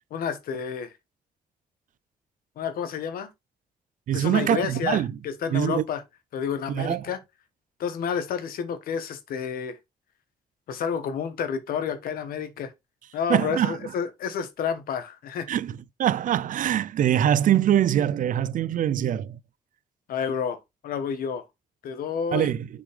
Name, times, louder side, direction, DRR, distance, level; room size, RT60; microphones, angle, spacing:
voice 1, 0.1-0.9 2.6-3.3 4.1-6.0 6.3-7.2 7.8-9.8 10.7-12.7 13.1-15.5 20.1-21.4 21.8-22.5, left 7 dB, 90° left, 1.3 m, -30 dB
voice 2, 4.1-5.1 5.5-5.8 6.7-7.1 13.3-13.8 15.5-19.4 22.3-22.7, right 10 dB, 65° right, 0.5 m, -23 dB
6.7 x 5.2 x 3.4 m
cardioid pair, 100°, 15 cm